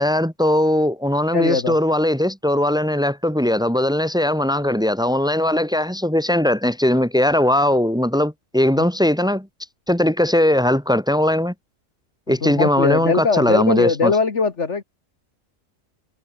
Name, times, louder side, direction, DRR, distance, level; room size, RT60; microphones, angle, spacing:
voice 1, 0.0-9.5 9.9-11.5 12.3-14.1, left 1 dB, 5° right, 2.4 m, -19 dB
voice 2, 1.3-1.8 12.3-14.8, left 4 dB, 65° left, 2.0 m, -21 dB
omnidirectional pair, 1.3 m